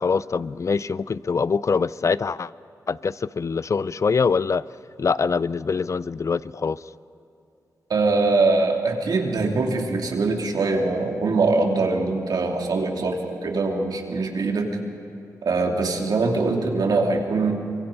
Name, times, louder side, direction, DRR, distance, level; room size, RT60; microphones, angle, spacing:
voice 1, 0.0-2.5 2.9-4.6 5.0-6.8, left 5 dB, 50° left, 18 dB, 0.5 m, -24 dB
voice 2, 7.9-14.7 15.4-17.6, right 3 dB, 75° right, 1 dB, 2.8 m, -22 dB
25.0 x 23.0 x 5.4 m, 2.7 s
cardioid pair, 55°, 7 cm